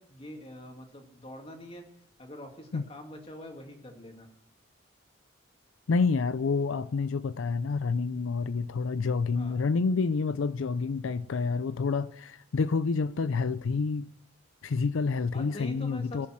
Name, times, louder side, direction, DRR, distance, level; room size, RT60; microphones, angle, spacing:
voice 1, 0.0-1.9 2.2-4.3 9.3-9.6 15.3-16.3, left 1 dB, 30° left, 2.2 m, -44 dB
voice 2, 5.9-14.1 14.6-16.3, left 4 dB, 85° left, 0.5 m, -28 dB
18.0 x 7.3 x 7.6 m
head